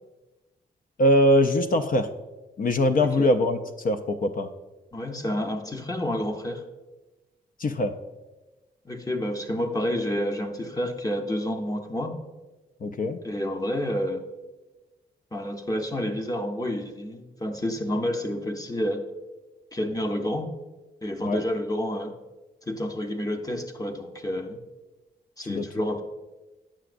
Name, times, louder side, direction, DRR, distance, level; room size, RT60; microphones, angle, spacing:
voice 1, 1.0-2.1 2.6-3.6 3.8-4.5 7.6-8.0 12.8-13.2 21.2-21.4 25.5-25.6, left 1 dB, 50° left, 8 dB, 0.5 m, -22 dB
voice 2, 4.9-6.6 8.8-12.1 13.2-14.2 15.3-19.0 19.7-20.5 21.0-22.1 22.7-24.6 25.4-26.0, equal, 20° left, 4 dB, 0.7 m, -29 dB
8.8 x 5.9 x 2.5 m, 1.1 s
cardioid pair, 55°, 19 cm